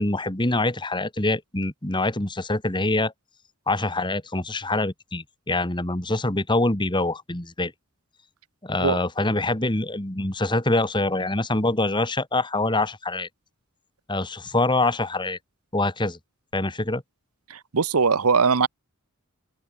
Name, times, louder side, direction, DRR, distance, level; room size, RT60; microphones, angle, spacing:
voice 1, 0.0-3.1 3.7-7.7 8.6-13.3 14.1-15.4 15.7-16.2 16.5-17.0, left 2 dB, 20° left, 2.0 m, -25 dB
voice 2, 17.7-18.7, right 5 dB, 85° right, 0.9 m, -20 dB
head